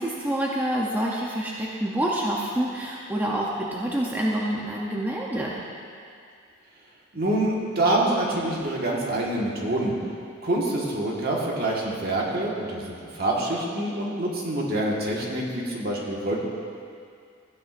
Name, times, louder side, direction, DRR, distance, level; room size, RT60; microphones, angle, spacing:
voice 1, 0.0-5.6 11.6-11.7, right 1 dB, 10° right, -4 dB, 0.7 m, -27 dB
voice 2, 7.1-10.0 10.4-16.4, right 1 dB, 50° right, -3 dB, 1.6 m, -26 dB
14.5 x 9.3 x 2.6 m, 2.3 s
head